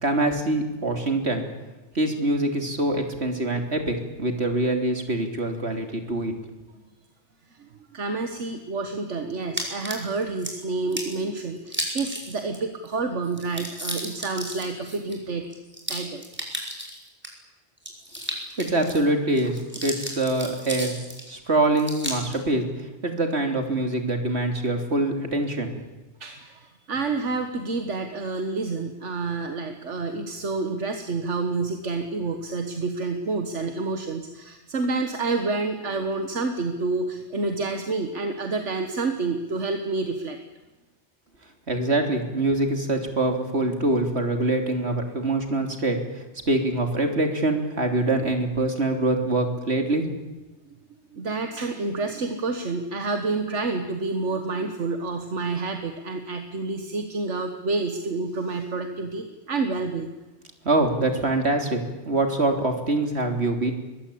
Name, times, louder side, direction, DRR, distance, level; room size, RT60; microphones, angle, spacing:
voice 1, 0.0-1.4 2.0-6.4 18.6-20.9 21.3-22.7 23.0-25.8 41.7-46.0 46.5-50.1 60.6-63.7, right 2 dB, 65° right, 5 dB, 3.5 m, -24 dB
voice 2, 7.5-15.5 15.9-16.2 26.2-40.4 51.1-60.1, right 3 dB, 80° right, 6 dB, 1.8 m, -29 dB
sound 1, 9.6-10.5 10.9-11.2 11.7-12.6 12.8-12.9 13.2-17.3 17.8-19.0 19.4-21.3 21.8-22.4, equal, 10° right, 5.0 m, -34 dB
23.5 x 21.0 x 8.7 m, 1.1 s
omnidirectional pair, 1.2 m